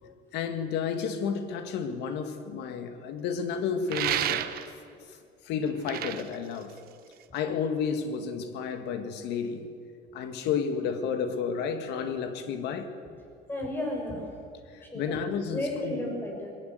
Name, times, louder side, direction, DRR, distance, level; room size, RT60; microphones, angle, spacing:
voice 1, 0.0-4.5 5.1-5.2 5.4-6.7 7.3-9.7 10.1-12.9 14.7-16.1, left 6 dB, 75° left, 2.0 m, -31 dB
sound 1, 3.9-4.9 5.7-7.4, right 12 dB, 60° right, 1.1 m, -31 dB
voice 2, 13.5-14.3 14.8-15.3 15.5-16.5, left 1 dB, 10° left, 6.1 m, -33 dB
21.5 x 17.5 x 8.0 m
cardioid pair, 135°, 18 cm